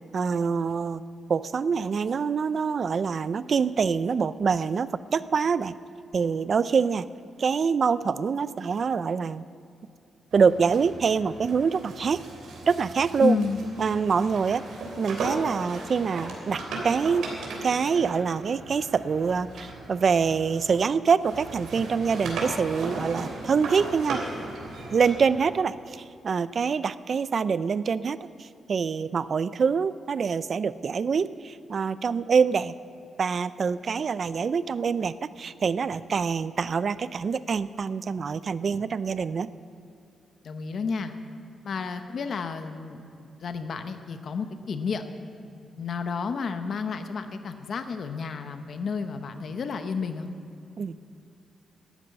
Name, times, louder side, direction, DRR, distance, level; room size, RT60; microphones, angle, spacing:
voice 1, 0.1-1.0 1.3-5.7 6.1-7.1 7.4-9.4 10.3-12.2 12.7-13.4 13.8-14.6 15.0-17.2 17.6-24.2 24.9-32.7 33.2-39.5 50.8-51.0, right 5 dB, 40° right, 16 dB, 0.4 m, -25 dB
sound 1, 10.3-20.9 21.2-25.5, right 2 dB, 85° right, 3.2 m, -37 dB
voice 2, 13.2-13.6 40.4-41.1 41.6-45.0 45.7-50.3, left 5 dB, 45° left, 8 dB, 0.8 m, -31 dB
12.5 x 9.4 x 9.5 m, 2.6 s
wide cardioid pair, 175°, 0 cm